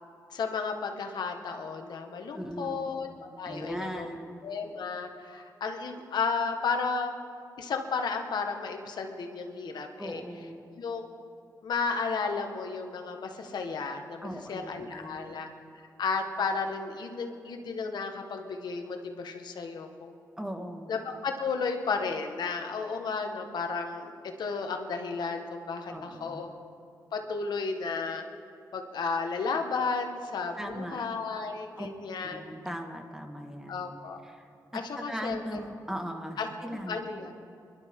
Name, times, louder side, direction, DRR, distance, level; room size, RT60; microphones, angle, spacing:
voice 1, 0.3-4.1 4.4-7.1 7.6-10.2 10.8-11.1 11.6-15.5 16.0-20.1 20.9-24.1 24.4-26.5 27.1-28.2 28.7-32.4 33.7-34.2 34.7-35.6 36.4-36.5 36.9-37.3, left 4 dB, 75° left, 4 dB, 1.5 m, -33 dB
voice 2, 2.3-2.9 3.5-4.4 10.0-10.7 14.2-15.4 20.4-20.9 25.9-26.5 30.6-31.0 31.8-31.9 32.2-34.0 34.2-34.8 35.1-37.0, equal, 5° right, 4 dB, 1.9 m, -39 dB
24.0 x 12.0 x 3.8 m, 2.4 s
cardioid pair, 65°, 7 cm